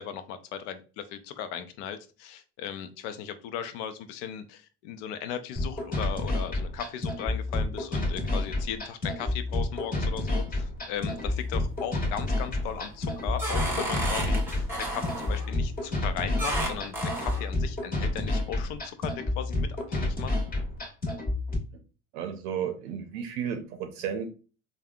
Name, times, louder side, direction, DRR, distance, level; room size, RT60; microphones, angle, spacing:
voice 1, 0.0-20.4, left 8 dB, 65° left, 10 dB, 0.6 m, -37 dB
sound 1, 5.6-21.6, left 2 dB, 25° left, 1.4 m, -29 dB
sound 2, 11.0-11.6 12.0-12.5 12.9-15.5 16.4-17.5, right 1 dB, 5° right, 0.9 m, -32 dB
voice 2, 22.1-24.3, right 8 dB, 70° right, 5 dB, 0.6 m, -33 dB
3.4 x 2.2 x 2.2 m, 0.35 s
hypercardioid pair, 95°, 37 cm